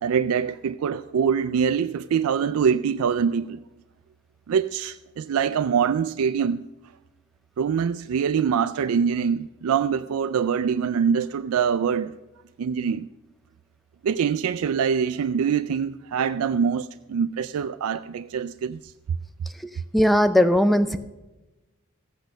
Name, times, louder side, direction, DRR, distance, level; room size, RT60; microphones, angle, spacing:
voice 1, 0.0-3.6 4.5-6.6 7.6-12.2 12.6-13.1 14.0-18.9, right 7 dB, 90° right, 0.4 m, -24 dB
voice 2, 19.9-21.0, left 1 dB, ahead, 0.4 m, -18 dB
14.5 x 8.2 x 6.5 m
head